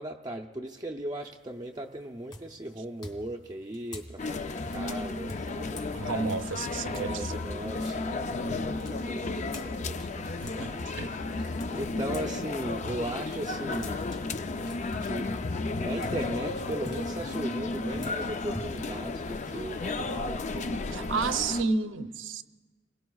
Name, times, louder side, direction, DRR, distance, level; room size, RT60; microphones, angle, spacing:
voice 1, 0.0-5.8 6.9-14.0 15.0-15.3 15.7-21.6, right 1 dB, 20° right, 0.6 m, -38 dB
sound 1, 1.4-1.8 2.3-7.1 7.5-12.3 12.7-20.1, left 1 dB, 20° left, 2.1 m, -46 dB
sound 2, 4.2-21.6, left 3 dB, 35° left, 0.4 m, -33 dB
voice 2, 5.9-7.4 9.2-9.5 10.4-11.1 20.9-22.4, right 4 dB, 70° right, 0.7 m, -32 dB
28.5 x 21.5 x 2.4 m
head